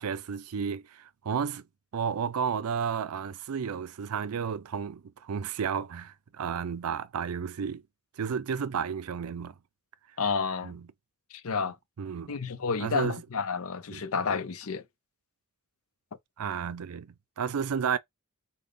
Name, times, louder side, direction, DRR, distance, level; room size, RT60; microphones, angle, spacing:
voice 1, 0.0-1.6 1.9-7.8 8.2-9.6 10.6-10.9 12.0-12.4 12.8-13.2 13.9-14.1 16.4-18.0, right 7 dB, 90° right, 0.4 m, -32 dB
voice 2, 10.2-10.7 11.3-11.8 12.3-14.8, left 5 dB, 75° left, 0.6 m, -30 dB
5.2 x 2.2 x 3.9 m
head